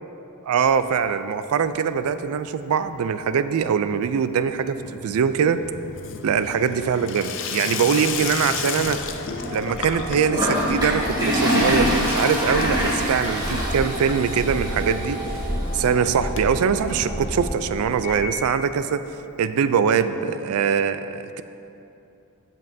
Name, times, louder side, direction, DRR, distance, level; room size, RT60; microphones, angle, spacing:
voice 1, 0.4-5.6 6.2-9.0 9.5-15.2 15.7-19.0 19.4-21.4, right 7 dB, 75° right, 12 dB, 0.3 m, -22 dB
Water tap faucet / Sink (filling or washing), 0.6-1.4 1.7-2.2 2.5-17.8 18.1-18.2 18.4-18.5 18.7-18.8 19.9-20.0, left 6 dB, 60° left, 0.5 m, -35 dB
sound 1, 8.1-18.6, equal, 30° left, 0.9 m, -32 dB
Toilet flush, 10.3-15.4, equal, 20° right, 1.6 m, -24 dB
14.5 x 5.3 x 2.7 m, 2.8 s
head